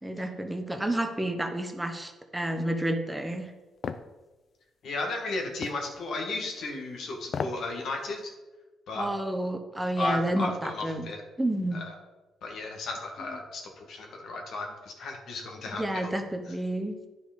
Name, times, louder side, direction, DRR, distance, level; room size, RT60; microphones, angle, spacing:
voice 1, 0.0-3.5 9.0-11.1 11.4-11.8 15.8-17.0, right 1 dB, 10° right, 5 dB, 1.0 m, -30 dB
sound 1, 3.8-4.1 5.6-5.8 7.2-7.7 8.0-8.1, left 6 dB, 50° left, 0.5 m, -33 dB
voice 2, 4.8-8.3 8.9-9.1 10.0-11.2 11.7-11.9 12.4-16.1 16.5-16.6, left 2 dB, 65° left, 1 dB, 1.8 m, -34 dB
9.9 x 5.2 x 5.2 m, 1.2 s
cardioid pair, 90°, 0 cm